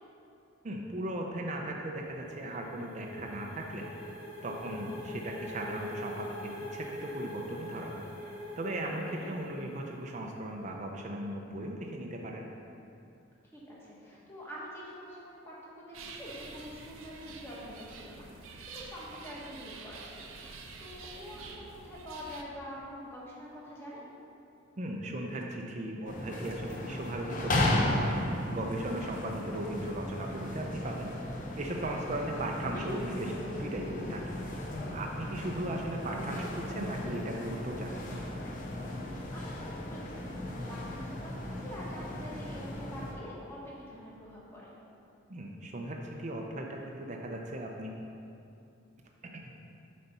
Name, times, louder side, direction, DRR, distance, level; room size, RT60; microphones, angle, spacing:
voice 1, 0.6-3.9 4.4-12.5 24.8-31.1 31.6-38.2 45.3-47.9 49.2-49.5, right 1 dB, 35° right, 0 dB, 0.5 m, -37 dB
sound 1, 1.8-10.4, left 1 dB, 75° left, 1.3 m, -44 dB
voice 2, 4.5-5.0 9.1-9.3 13.4-24.1 31.9-32.3 39.3-44.7, equal, 10° left, -7 dB, 1.4 m, -46 dB
sound 2, 15.9-22.4, right 4 dB, 75° right, 0.6 m, -47 dB
sound 3, 26.1-43.1, left 1 dB, 40° left, 0.8 m, -35 dB
7.9 x 4.2 x 5.4 m, 2.6 s
head